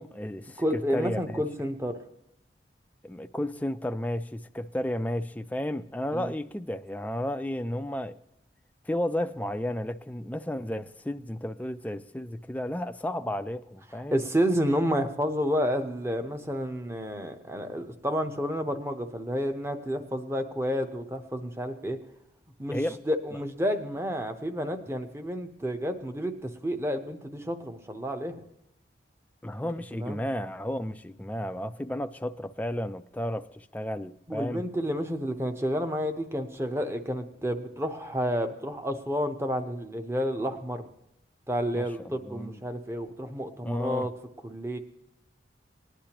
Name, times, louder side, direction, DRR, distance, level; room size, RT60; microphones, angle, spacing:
voice 1, 0.0-1.4 3.0-8.2 8.9-14.2 22.7-23.0 29.4-34.6 41.7-42.6 43.6-44.1, left 1 dB, 10° left, 9 dB, 0.3 m, -33 dB
voice 2, 0.6-2.0 6.1-6.3 14.1-22.0 22.6-22.8 23.1-28.4 30.0-30.2 34.3-40.9 41.5-44.1 44.4-44.8, equal, 15° right, 7 dB, 0.8 m, -30 dB
19.5 x 10.0 x 2.9 m, 0.84 s
head